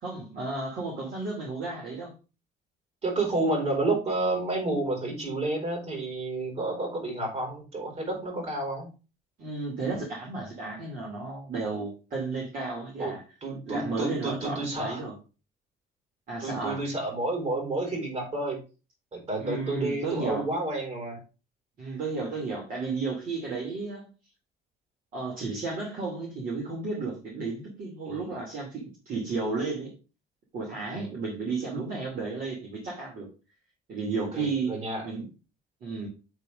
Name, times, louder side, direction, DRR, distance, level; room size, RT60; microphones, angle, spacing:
voice 1, 0.0-2.1 9.4-13.2 13.7-15.1 16.3-16.8 19.4-20.4 21.8-24.1 25.1-29.9 30.5-33.3 33.9-34.8 35.0-35.3 35.8-36.1, right 3 dB, 55° right, 2.6 m, -33 dB
voice 2, 3.0-8.9 13.0-13.1 13.4-15.0 16.4-18.6 19.1-21.2 28.1-28.3 30.9-31.1 34.3-35.0, right 2 dB, 35° right, 4.3 m, -30 dB
8.1 x 3.8 x 5.1 m
cardioid pair, 110°, 17 cm